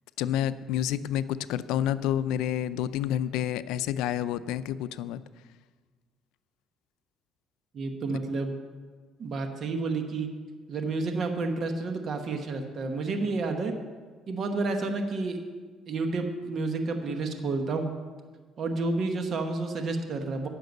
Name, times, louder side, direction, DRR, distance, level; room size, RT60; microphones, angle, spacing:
voice 1, 0.2-5.2, left 11 dB, 90° left, 14 dB, 0.4 m, -29 dB
voice 2, 7.7-8.5 9.2-10.3 10.7-13.7 14.3-15.4 15.9-17.9 18.6-20.5, right 3 dB, 50° right, 5 dB, 1.2 m, -30 dB
10.5 x 6.6 x 7.9 m, 1.5 s
cardioid pair, 125°, 0 cm